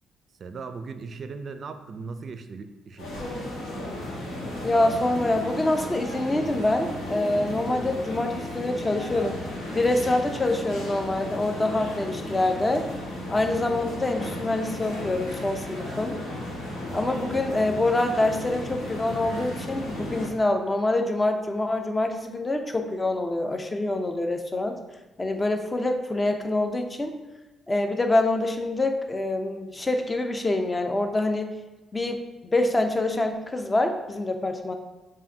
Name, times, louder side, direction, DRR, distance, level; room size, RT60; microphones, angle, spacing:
voice 1, 0.4-3.1 16.8-17.6, right 4 dB, 50° right, 8 dB, 0.4 m, -39 dB
sound 1, 3.0-20.3, left 1 dB, 85° left, 1.3 m, -34 dB
voice 2, 4.6-9.4 9.7-12.9 13.3-16.2 16.9-24.8 25.2-27.1 27.7-31.5 31.9-34.7, left 2 dB, 20° left, 5 dB, 0.5 m, -25 dB
7.4 x 2.5 x 2.7 m, 1.2 s
cardioid pair, 90°, 0 cm